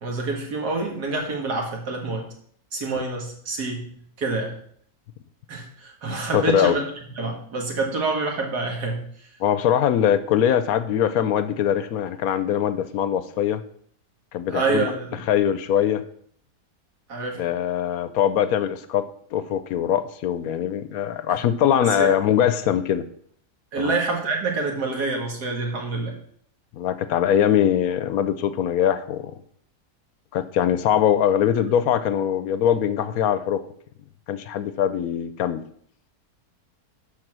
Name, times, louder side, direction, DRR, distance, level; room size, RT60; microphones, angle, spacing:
voice 1, 0.0-2.3 2.7-3.9 4.2-4.6 5.5-6.8 7.2-9.1 14.5-15.2 17.1-17.5 21.8-22.1 23.7-26.2, right 3 dB, 80° right, 1 dB, 2.3 m, -27 dB
voice 2, 6.3-6.8 9.4-13.6 14.3-14.9 15.3-16.0 17.4-23.0 23.8-23.9 26.7-29.3 30.3-33.6 34.3-35.6, left 9 dB, 75° left, 12 dB, 1.0 m, -22 dB
11.5 x 4.1 x 6.0 m, 0.62 s
omnidirectional pair, 1.7 m